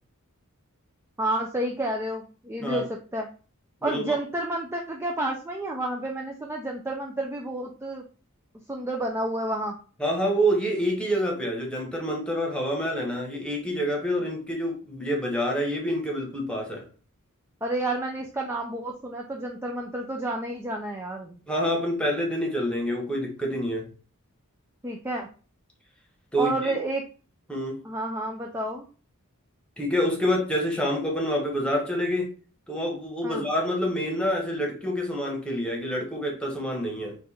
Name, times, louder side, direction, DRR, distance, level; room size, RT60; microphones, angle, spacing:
voice 1, 1.2-3.3 3.8-8.0 8.7-9.7 17.6-21.4 24.8-25.3 26.4-27.1 27.8-28.8 33.2-33.5, right 1 dB, 10° right, 0 dB, 0.4 m, -30 dB
voice 2, 3.8-4.2 10.0-16.9 21.5-23.9 26.3-26.7 27.5-27.8 29.8-32.3 32.7-37.2, equal, 5° left, -1 dB, 1.1 m, -27 dB
4.5 x 2.5 x 4.2 m, 0.37 s
head